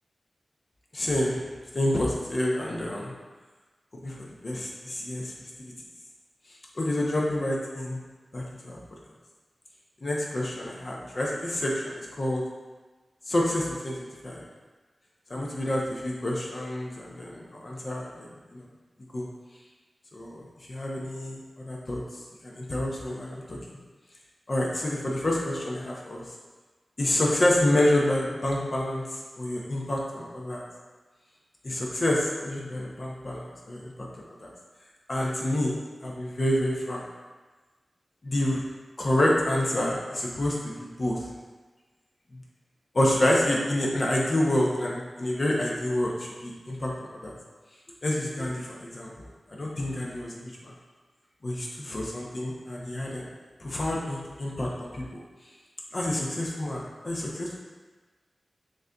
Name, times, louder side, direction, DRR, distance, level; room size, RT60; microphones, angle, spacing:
voice 1, 0.9-1.4 1.7-3.1 4.0-4.2 4.4-5.3 5.6-5.7 6.8-8.0 8.3-8.8 10.0-12.4 13.3-14.5 15.3-18.6 19.1-19.3 20.1-20.4 20.7-22.0 22.4-23.8 24.5-26.2 27.0-30.6 31.6-34.1 34.4-34.5 35.1-35.7 36.0-37.0 38.2-38.6 39.0-41.3 42.3-42.4 42.9-47.3 48.0-50.7 51.4-53.3 53.6-55.2 55.9-57.6, left 1 dB, 45° left, -3 dB, 0.6 m, -28 dB
6.2 x 2.6 x 2.2 m, 1.3 s
wide cardioid pair, 95°, 0 cm